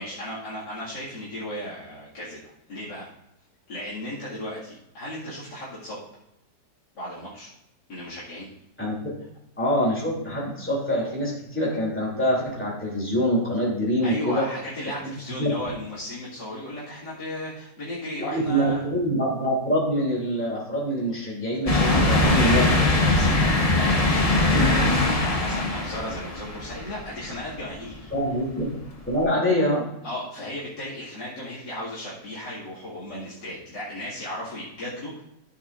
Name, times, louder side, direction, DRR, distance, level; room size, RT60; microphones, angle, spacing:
voice 1, 0.0-3.1 3.7-6.0 6.9-7.5 7.9-8.5 14.0-18.8 21.8-24.9 25.2-28.1 30.0-35.2, left 1 dB, 75° left, -10 dB, 2.8 m, -35 dB
voice 2, 9.6-14.4 15.4-15.5 18.2-22.6 28.1-28.7 29.1-29.8, equal, 5° left, -5 dB, 2.9 m, -25 dB
sound 1, 21.7-27.2 27.7-27.8 29.2-29.3, left 2 dB, 25° left, 0.9 m, -21 dB
14.0 x 6.8 x 2.5 m, 0.87 s
omnidirectional pair, 1.9 m